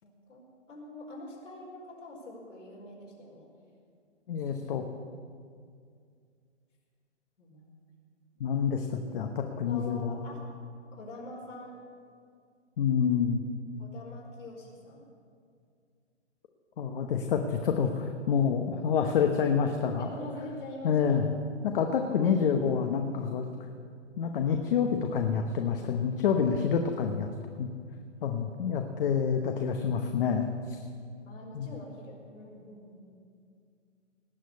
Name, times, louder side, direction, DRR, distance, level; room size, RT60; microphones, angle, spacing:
voice 1, 0.0-3.5 4.3-4.6 7.4-7.7 9.5-10.4 10.9-11.8 13.8-15.1 20.0-21.3 31.2-33.1, left 1 dB, 80° left, -3 dB, 4.9 m, -45 dB
voice 2, 4.3-4.8 8.4-10.2 12.8-13.4 16.8-20.1 20.8-21.2 21.6-23.5 24.2-27.3 27.6-27.7 28.2-30.8 31.5-31.7, left 7 dB, 50° left, 4 dB, 1.1 m, -27 dB
18.5 x 6.3 x 9.5 m, 2.2 s
hypercardioid pair, 145°, 36 cm